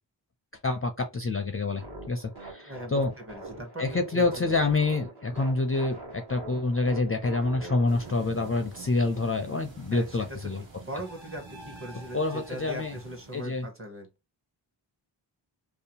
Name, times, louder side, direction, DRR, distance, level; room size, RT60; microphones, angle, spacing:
voice 1, 0.6-3.1 3.8-10.6 12.1-13.0 13.3-13.7, left 3 dB, 30° left, 0.4 m, -27 dB
sound 1, 1.8-9.2, right 2 dB, 55° right, 1.3 m, -43 dB
voice 2, 2.7-3.9 4.1-4.5 9.9-10.5 10.8-14.1, right 1 dB, 30° right, 1.0 m, -40 dB
sound 2, 7.9-13.6, right 3 dB, 70° right, 0.9 m, -47 dB
2.7 x 2.1 x 2.8 m
wide cardioid pair, 60°, 47 cm